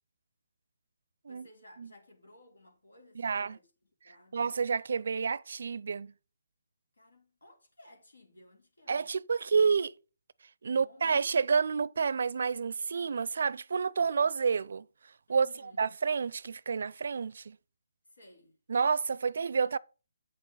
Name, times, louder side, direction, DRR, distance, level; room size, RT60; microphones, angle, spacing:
voice 1, 1.3-3.7 4.0-4.5 6.9-9.1 10.7-11.3 15.3-15.9 18.1-18.6, left 1 dB, 90° left, 5.1 m, -58 dB
voice 2, 3.2-3.6 4.3-6.1 8.9-9.9 10.6-14.9 15.3-15.5 15.8-17.6 18.7-19.8, right 5 dB, 60° right, 0.5 m, -29 dB
8.7 x 6.8 x 5.7 m
hypercardioid pair, 155°, 0 cm